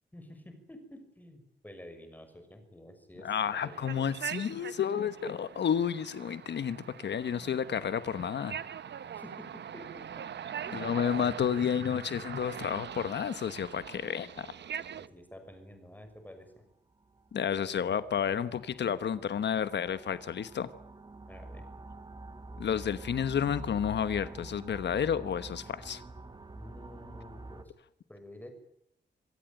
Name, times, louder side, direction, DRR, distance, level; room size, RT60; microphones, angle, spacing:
voice 1, 0.1-4.0 9.1-10.3 10.6-11.0 15.0-16.7 21.3-21.6 26.5-27.7 28.1-28.5, left 1 dB, 10° left, 7 dB, 6.2 m, -50 dB
voice 2, 3.2-8.6 10.7-14.5 17.3-20.7 22.6-26.0, left 8 dB, 80° left, 13 dB, 1.2 m, -31 dB
sound 1, 3.4-15.1, right 8 dB, 80° right, 1.0 m, -42 dB
sound 2, 15.5-15.8 16.1-16.2 16.7-27.6, right 2 dB, 25° right, 1.7 m, -47 dB
26.5 x 17.0 x 9.0 m, 0.76 s
wide cardioid pair, 125°, 18 cm